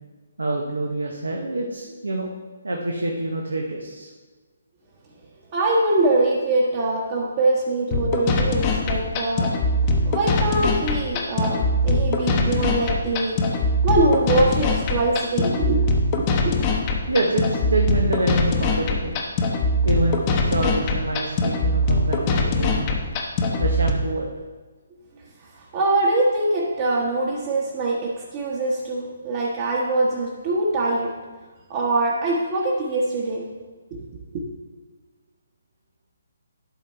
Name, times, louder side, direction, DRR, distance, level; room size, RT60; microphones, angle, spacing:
voice 1, 0.4-2.3 2.6-4.1 12.2-12.3 17.1-19.2 19.8-23.0 23.6-24.3, right 2 dB, 85° right, 1 dB, 0.9 m, -26 dB
voice 2, 5.5-9.5 10.0-11.6 11.8-13.4 13.8-15.8 16.2-16.6 25.7-31.1 31.7-33.4 33.9-34.0 34.3-34.4, right 2 dB, 35° right, -5 dB, 1.3 m, -23 dB
sound 1, 7.9-23.9, left 2 dB, 30° left, 0.9 m, -22 dB
11.5 x 4.0 x 4.5 m, 1.3 s
figure-of-eight pair, 145°, 0 cm